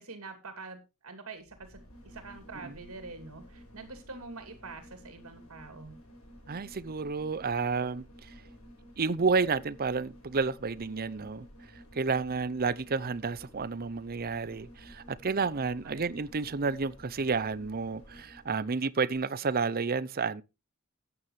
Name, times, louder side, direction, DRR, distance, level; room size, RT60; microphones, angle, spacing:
voice 1, 0.0-5.9 15.9-16.0, right 3 dB, 75° right, 2.7 m, -45 dB
sound 1, 1.4-18.8 19.1-19.2, equal, 80° left, 5.4 m, -53 dB
voice 2, 6.5-8.3 9.0-11.5 11.9-20.4, right 4 dB, 45° right, 0.7 m, -31 dB
14.5 x 9.5 x 3.2 m
head